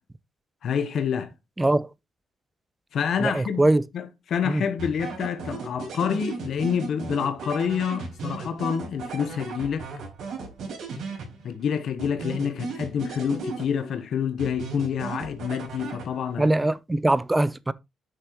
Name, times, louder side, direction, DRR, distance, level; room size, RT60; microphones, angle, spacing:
voice 1, 0.6-1.3 2.9-9.9 11.4-16.5, left 7 dB, 65° left, 1.0 m, -28 dB
voice 2, 3.2-3.8 4.4-4.6 16.4-17.7, right 2 dB, 15° right, 0.6 m, -22 dB
sound 1, 4.8-11.6 12.0-14.0 14.4-16.4, right 4 dB, 75° right, 4.4 m, -36 dB
9.4 x 6.4 x 3.0 m
cardioid pair, 90°, 0 cm